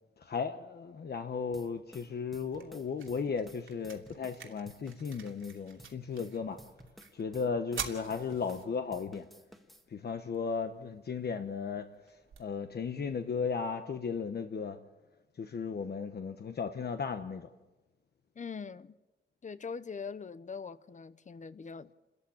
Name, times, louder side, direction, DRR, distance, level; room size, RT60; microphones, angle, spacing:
voice 1, 0.2-6.6 7.1-9.3 9.9-14.8 15.4-17.5, left 5 dB, 55° left, 1.1 m, -35 dB
sound 1, 1.5-4.4 4.7-8.7 8.9-9.8, equal, ahead, 1.8 m, -55 dB
sound 2, 2.0-14.0, right 7 dB, 85° right, 2.8 m, -49 dB
voice 2, 18.4-19.0 19.4-21.9, left 5 dB, 40° left, 0.8 m, -42 dB
29.5 x 14.0 x 8.7 m
wide cardioid pair, 145°, 20 cm